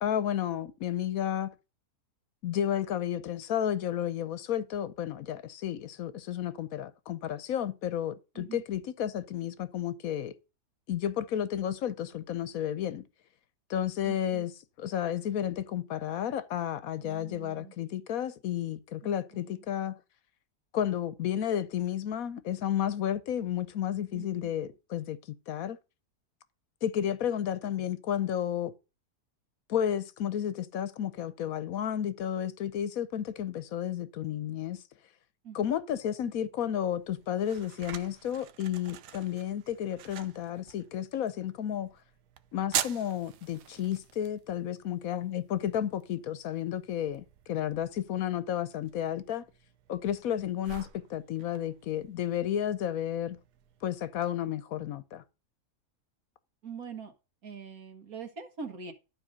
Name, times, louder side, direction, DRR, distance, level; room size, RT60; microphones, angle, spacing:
voice 1, 0.0-1.5 2.4-10.3 10.9-13.0 13.7-14.5 14.8-19.9 20.7-25.8 26.8-28.7 29.7-34.8 35.5-41.9 42.5-49.4 49.9-53.4 53.8-55.2, left 10 dB, 65° left, 1.2 m, -32 dB
voice 2, 14.0-14.4 17.0-17.7 19.0-19.6 24.1-24.5 35.4-35.7 56.6-57.1 57.4-58.9, right 5 dB, 60° right, 2.0 m, -44 dB
sound 1, 36.7-54.3, right 10 dB, 85° right, 1.3 m, -44 dB
12.0 x 4.3 x 6.3 m
omnidirectional pair, 1.7 m